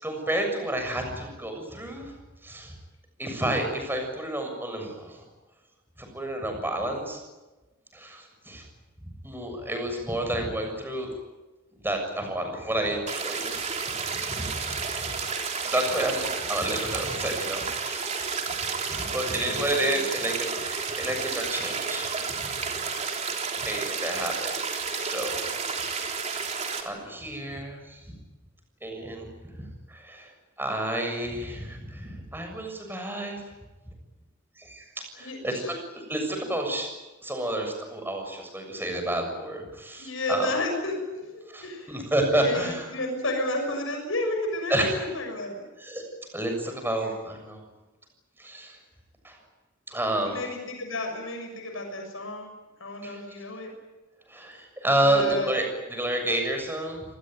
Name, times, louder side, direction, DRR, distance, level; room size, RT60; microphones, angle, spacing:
voice 1, 0.0-2.1 2.4-2.8 3.2-5.2 6.0-7.2 7.9-8.6 9.0-11.1 11.8-13.6 14.2-14.9 15.6-18.1 18.9-22.4 23.6-24.6 25.0-25.5 26.0-26.1 26.8-28.2 28.8-30.3 30.6-33.4 34.6-40.5 41.5-42.8 44.7-45.0 45.8-46.0 46.3-47.6 48.4-48.8 49.2-49.4 49.9-50.4 53.0-53.2 54.3-57.0, right 1 dB, 10° right, 4 dB, 6.9 m, -30 dB
sound 1, 13.1-26.8, right 5 dB, 35° right, 3.5 m, -31 dB
voice 2, 18.9-20.0 35.2-35.7 40.0-41.9 42.3-45.6 50.2-52.5 52.8-53.7 55.0-55.6, left 1 dB, 80° left, 3 dB, 6.4 m, -32 dB
27.5 x 20.0 x 9.4 m, 1.1 s
head